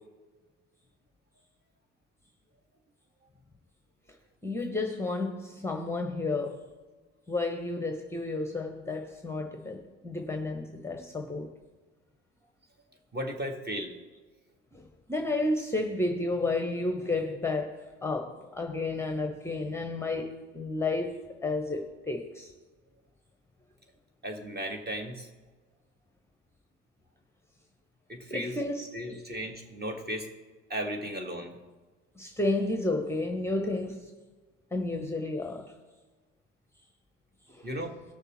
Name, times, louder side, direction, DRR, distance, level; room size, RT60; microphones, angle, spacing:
voice 1, 4.4-6.7 7.3-11.5 14.7-22.5 28.3-29.2 32.2-34.1 34.7-35.7 37.5-37.7, left 2 dB, 5° left, 1.0 m, -32 dB
voice 2, 13.1-14.0 24.2-25.3 28.1-28.5 28.9-30.3 30.7-31.6 37.6-38.0, equal, 25° right, 1.8 m, -35 dB
18.0 x 6.5 x 3.1 m
hypercardioid pair, 60°, 37 cm